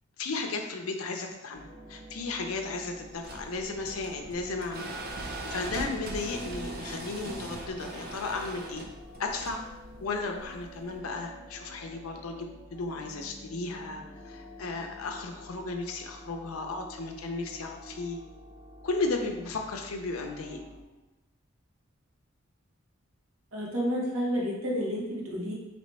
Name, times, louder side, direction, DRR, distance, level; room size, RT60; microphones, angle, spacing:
voice 1, 0.2-4.9 5.5-8.8 9.2-9.6 10.0-18.2 18.8-20.6, left 3 dB, 85° left, 3 dB, 0.5 m, -34 dB
sound 1, 1.5-20.8, left 1 dB, 5° left, 0.8 m, -49 dB
sound 2, 3.1-11.0, right 2 dB, 45° right, 0.5 m, -40 dB
voice 2, 23.5-25.5, equal, 80° right, -3 dB, 1.1 m, -30 dB
4.1 x 3.0 x 3.2 m, 1.0 s
head